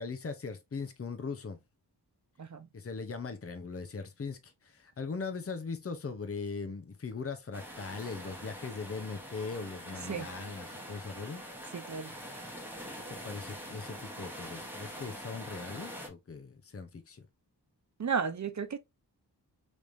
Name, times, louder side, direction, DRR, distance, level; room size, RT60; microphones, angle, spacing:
voice 1, 0.0-1.6 2.7-11.4 13.1-17.3, left 4 dB, 35° left, 0.6 m, -40 dB
sound 1, 7.5-16.1, equal, 5° right, 1.0 m, -44 dB
voice 2, 11.7-12.1 18.0-18.8, right 6 dB, 45° right, 0.5 m, -33 dB
3.4 x 3.2 x 2.5 m
wide cardioid pair, 85°, 42 cm